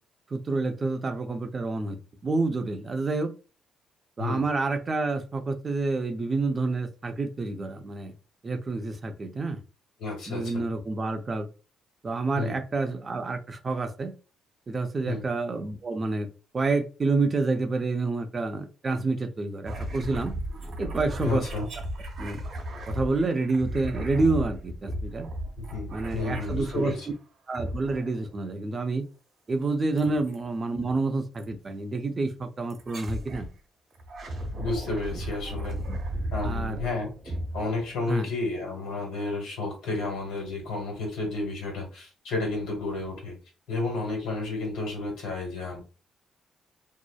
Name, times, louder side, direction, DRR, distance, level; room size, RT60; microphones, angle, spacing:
voice 1, 0.3-2.0 2.2-3.3 4.2-8.1 8.4-9.6 10.3-11.5 12.0-14.1 14.7-16.3 16.5-20.3 20.8-21.4 22.2-22.4 22.9-25.3 25.9-26.9 27.5-29.0 29.5-33.5 35.9-36.0 36.4-36.8 38.1-38.3, right 3 dB, 35° right, 6 dB, 0.4 m, -28 dB
voice 2, 10.0-10.6 12.3-12.6 15.0-15.2 21.2-21.7 25.6-27.1 30.0-30.2 34.5-35.8 36.3-43.4 43.7-45.8, left 3 dB, 85° left, 1 dB, 1.2 m, -31 dB
sound 1, 19.7-27.1 27.5-28.3 30.0-30.4 31.4-31.5 32.7-33.5 33.9-38.3, right 1 dB, 60° right, 0.9 m, -35 dB
2.6 x 2.0 x 2.3 m, 0.34 s
cardioid pair, 90°, 0 cm